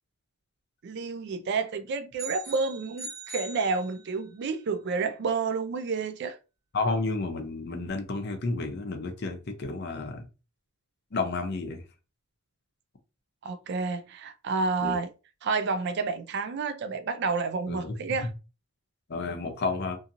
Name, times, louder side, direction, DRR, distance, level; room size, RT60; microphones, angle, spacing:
voice 1, 0.8-6.4 13.4-15.1 15.4-18.3, right 4 dB, 50° right, 0.3 m, -30 dB
sound 1, 2.2-4.4, right 3 dB, 15° right, 1.5 m, -41 dB
voice 2, 6.7-10.2 11.1-11.8 14.8-15.0 17.7-18.3 19.1-20.0, left 3 dB, 50° left, 0.5 m, -31 dB
2.8 x 2.6 x 2.4 m
head